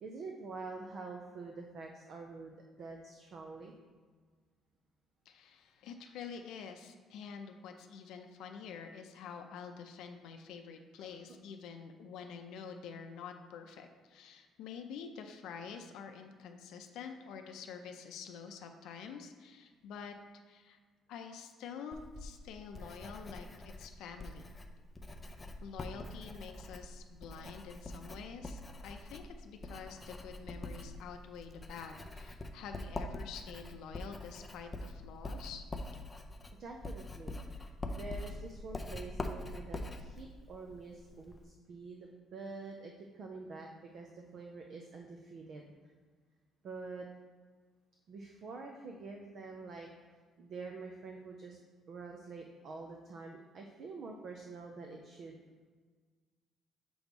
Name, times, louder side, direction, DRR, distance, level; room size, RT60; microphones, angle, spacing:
voice 1, 0.0-3.7 11.0-11.1 36.6-45.6 46.6-47.1 48.1-49.9 50.4-51.6 51.9-55.4, right 3 dB, 45° right, 2 dB, 0.5 m, -47 dB
voice 2, 5.3-20.2 20.5-20.8 21.1-24.5 25.6-35.7, left 6 dB, 80° left, 5 dB, 0.5 m, -47 dB
Writing, 21.9-41.4, left 2 dB, 15° left, 0.4 m, -44 dB
6.9 x 3.1 x 5.2 m, 1.5 s
cardioid pair, 155°, 0 cm